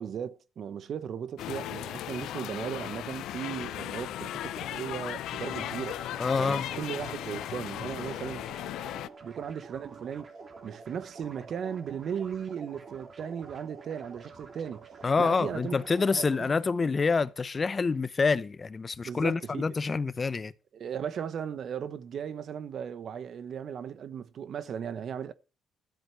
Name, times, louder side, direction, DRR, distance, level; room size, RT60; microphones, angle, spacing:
voice 1, 0.0-6.0 6.4-8.5 9.2-10.3 10.6-14.9 15.2-16.5 19.0-19.6 20.7-25.3, right 8 dB, 60° right, 1.0 m, -37 dB
sound 1, 1.4-9.1, left 13 dB, 85° left, 0.5 m, -37 dB
sound 2, 5.4-16.5, right 4 dB, 45° right, 3.4 m, -48 dB
voice 2, 6.2-6.7 15.0-20.5, left 4 dB, 35° left, 0.7 m, -27 dB
13.0 x 7.9 x 5.7 m
cardioid pair, 90°, 0 cm